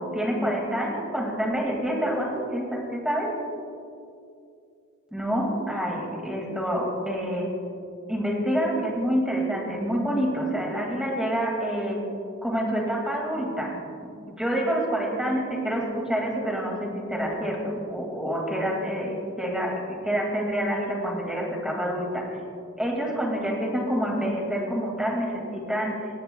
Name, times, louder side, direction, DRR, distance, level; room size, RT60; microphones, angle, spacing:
voice 1, 0.0-3.3 5.1-7.5 8.1-12.0 12.4-14.1 14.4-22.3 22.8-26.1, equal, 5° right, -1 dB, 2.1 m, -27 dB
18.5 x 16.5 x 2.3 m, 2.4 s
head